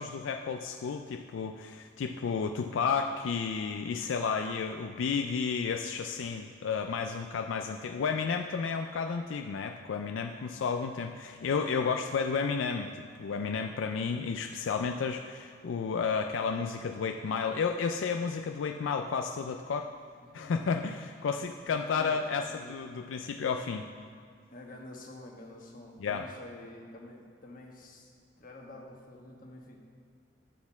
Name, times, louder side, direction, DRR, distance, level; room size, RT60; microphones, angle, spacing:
voice 1, 0.0-19.9 20.3-23.8 26.0-26.2, left 5 dB, 80° left, 5 dB, 0.4 m, -32 dB
voice 2, 20.2-20.8 21.6-22.8 24.5-29.8, left 1 dB, 45° left, 0 dB, 1.2 m, -49 dB
10.0 x 4.3 x 7.0 m, 2.1 s
head